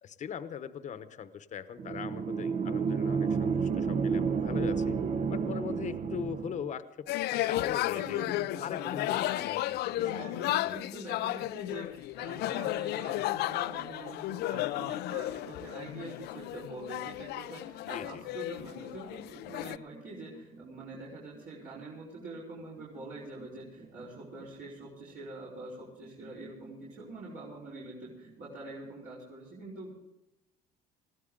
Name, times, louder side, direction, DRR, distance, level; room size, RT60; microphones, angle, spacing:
voice 1, 0.0-5.0 5.3-8.2 8.6-10.8 17.9-18.2, left 8 dB, 45° left, 11 dB, 1.0 m, -41 dB
sound 1, 1.8-6.7, right 5 dB, 45° right, 0.8 m, -30 dB
sound 2, 7.1-19.8, left 16 dB, 75° left, 0.4 m, -33 dB
voice 2, 7.9-9.3 10.0-29.9, right 2 dB, 65° right, -7 dB, 4.7 m, -45 dB
sound 3, 19.3-29.0, right 3 dB, 85° right, 7.3 m, -56 dB
20.5 x 15.5 x 3.8 m, 0.93 s
cardioid pair, 110°, 17 cm